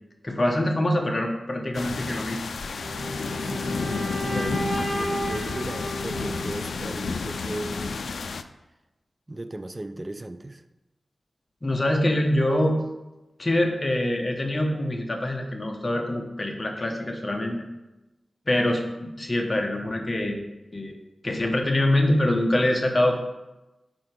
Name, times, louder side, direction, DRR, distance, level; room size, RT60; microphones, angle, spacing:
voice 1, 0.2-2.4 11.6-12.8 13.4-17.6 18.5-20.4 20.7-20.9 21.2-23.2, left 1 dB, 30° left, 2 dB, 1.0 m, -24 dB
sound 1, 1.7-8.4, left 4 dB, 90° left, 0.3 m, -31 dB
sound 2, 2.8-6.8, equal, 5° left, 1.5 m, -33 dB
voice 2, 3.4-7.9 9.3-10.6, right 2 dB, 25° right, 10 dB, 0.4 m, -36 dB
5.0 x 4.8 x 6.0 m, 1.0 s
wide cardioid pair, 100°, 0 cm